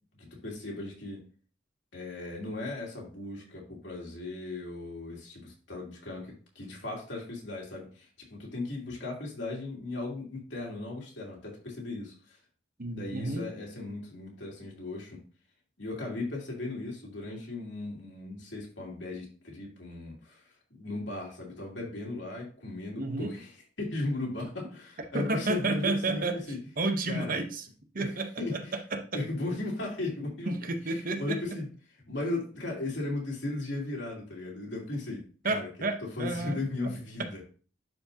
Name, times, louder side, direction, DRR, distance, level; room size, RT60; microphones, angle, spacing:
voice 1, 0.2-1.2 1.9-12.4 12.9-15.2 15.8-20.4 20.7-26.6 27.1-27.4 27.9-28.1 28.4-28.8 29.1-30.7 31.2-31.7 32.1-35.7 36.2-37.4, left 2 dB, 90° left, -2 dB, 3.0 m, -37 dB
voice 2, 12.8-13.4 23.0-23.3 25.1-26.4 26.8-27.6 27.9-28.6 28.9-29.2 30.5-31.4 35.4-36.9 37.2-37.4, right 2 dB, 50° right, 6 dB, 1.0 m, -31 dB
11.0 x 5.0 x 2.8 m, 0.40 s
head